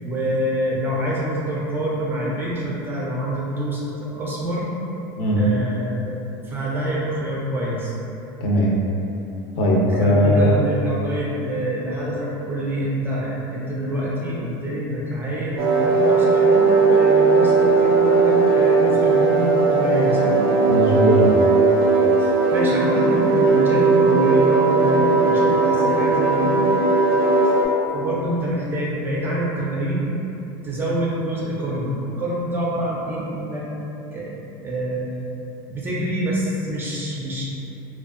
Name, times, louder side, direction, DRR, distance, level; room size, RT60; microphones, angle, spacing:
voice 1, 0.0-4.7 5.3-6.1 6.4-7.9 9.9-20.4 22.2-26.5 27.9-30.1 30.6-33.6 34.1-34.3 34.6-35.1 35.7-37.4, right 1 dB, 15° right, -5 dB, 0.4 m, -26 dB
voice 2, 8.4-8.8 9.6-10.5 20.7-21.4, equal, 55° left, -3 dB, 0.5 m, -18 dB
sound 1, 15.6-27.7, right 3 dB, 85° right, 0.5 m, -17 dB
2.6 x 2.2 x 2.4 m, 2.9 s
supercardioid pair, 140°, 12 cm